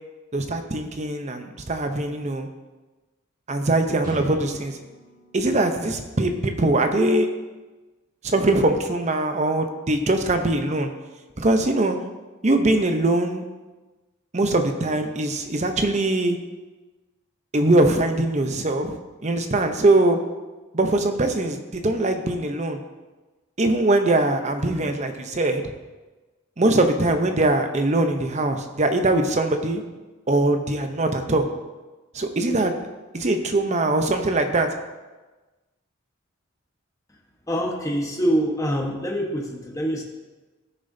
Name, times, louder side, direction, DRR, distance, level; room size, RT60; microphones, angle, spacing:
voice 1, 0.3-2.5 3.5-4.8 5.3-7.3 8.2-10.9 11.4-12.0 12.4-13.4 14.3-16.4 17.5-20.2 20.7-22.8 23.6-25.6 26.6-29.8 30.3-31.5 32.1-32.8 33.1-34.7, right 2 dB, 35° right, 6 dB, 0.8 m, -22 dB
sound 1, 4.0-7.8, equal, 20° right, 1.8 m, -45 dB
voice 2, 37.5-40.0, equal, 15° left, -1 dB, 1.2 m, -25 dB
15.0 x 6.6 x 2.7 m, 1.2 s
head